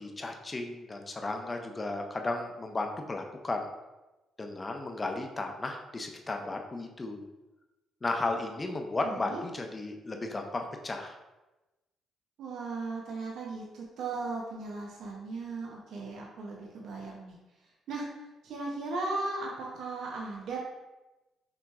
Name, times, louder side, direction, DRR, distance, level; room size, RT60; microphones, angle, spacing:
voice 1, 0.0-3.7 4.4-7.2 8.0-11.2, left 2 dB, 25° left, 4 dB, 0.6 m, -34 dB
voice 2, 9.0-9.4 12.4-17.4 17.9-20.6, right 3 dB, 75° right, -2 dB, 0.7 m, -37 dB
6.0 x 2.9 x 2.3 m, 1.1 s
cardioid pair, 90°, 0 cm